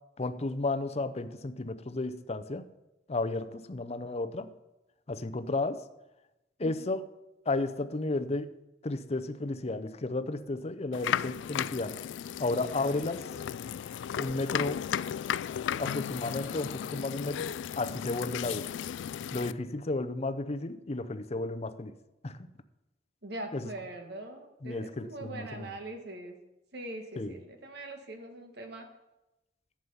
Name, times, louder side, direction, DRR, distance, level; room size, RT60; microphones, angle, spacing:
voice 1, 0.2-2.6 3.1-4.5 5.1-5.8 6.6-7.0 7.5-8.6 8.8-12.0 12.4-13.3 14.2-14.8 15.8-18.7 19.3-21.9 22.2-22.5 23.5-23.7 24.6-25.8 27.2-27.4, left 2 dB, 35° left, 11 dB, 0.6 m, -33 dB
sound 1, 10.9-19.5, left 9 dB, 85° left, 0.3 m, -35 dB
voice 2, 23.2-26.4 26.7-28.9, right 1 dB, 65° right, 5 dB, 1.5 m, -42 dB
11.0 x 7.5 x 5.5 m, 0.96 s
head